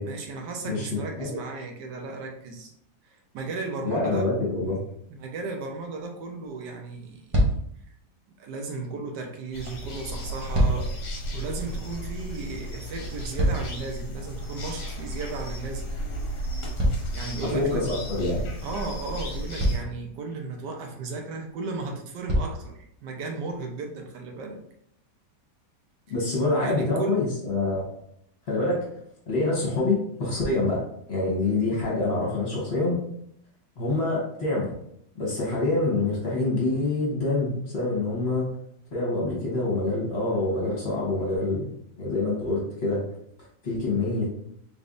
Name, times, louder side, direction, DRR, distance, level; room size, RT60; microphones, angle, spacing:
voice 1, 0.0-2.7 3.0-4.8 5.2-7.4 8.4-10.9 11.3-15.9 17.1-17.9 18.6-24.6 26.6-27.2, right 3 dB, 85° right, 2 dB, 1.3 m, -35 dB
voice 2, 0.6-1.4 3.8-4.8 17.5-18.4 26.1-27.9 28.5-28.9 29.3-33.0 33.8-34.7 35.1-38.6 38.9-41.7 42.0-43.0 43.6-44.3, left 2 dB, 40° left, -4 dB, 1.2 m, -26 dB
sound 1, 7.3-7.8 10.2-11.0 12.9-14.0 16.8-17.8 18.9-19.0 19.6-20.0 21.5-21.6 22.3-22.7 23.5-23.6, equal, 30° right, 0.6 m, -25 dB
sound 2, 9.5-19.8, equal, 60° left, 1.1 m, -34 dB
3.8 x 3.4 x 2.5 m, 0.71 s
omnidirectional pair, 1.8 m